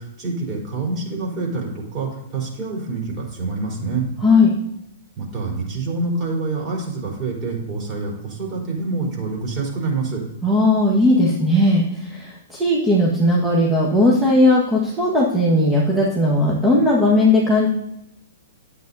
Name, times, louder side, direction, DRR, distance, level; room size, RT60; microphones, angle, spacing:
voice 1, 0.0-4.1 5.2-10.2, right 3 dB, 30° right, -2 dB, 4.2 m, -26 dB
voice 2, 4.2-4.6 10.4-17.7, left 1 dB, 10° right, -4 dB, 1.7 m, -17 dB
12.0 x 8.3 x 2.8 m, 0.83 s
figure-of-eight pair, 110°, 0 cm